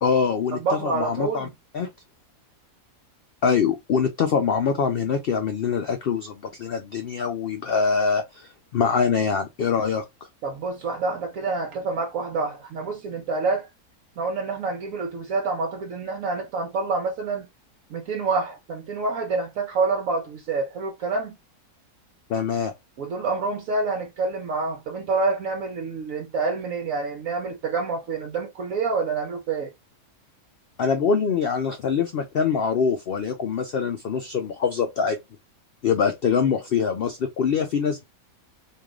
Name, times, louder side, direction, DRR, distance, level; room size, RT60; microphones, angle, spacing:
voice 1, 0.0-1.5 1.7-1.9 3.4-10.0 22.3-22.7 30.8-35.2 35.8-38.0, left 6 dB, 85° left, 0.5 m, -24 dB
voice 2, 0.5-1.5 10.4-13.7 14.2-17.5 17.9-21.3 23.0-29.7, right 4 dB, 70° right, 1.0 m, -27 dB
3.2 x 2.5 x 3.5 m
omnidirectional pair, 1.6 m